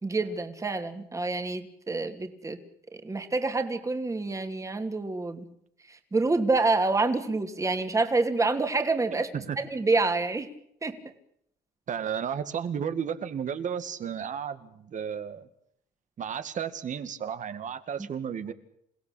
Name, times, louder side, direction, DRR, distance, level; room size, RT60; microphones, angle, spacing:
voice 1, 0.0-2.6 3.0-5.4 6.1-9.3 9.6-10.5 10.8-11.0, right 3 dB, 20° right, 6 dB, 2.8 m, -27 dB
voice 2, 11.9-15.5 16.2-18.5, right 8 dB, 50° right, 11 dB, 2.1 m, -33 dB
28.5 x 17.0 x 8.6 m, 0.73 s
cardioid pair, 110°, 17 cm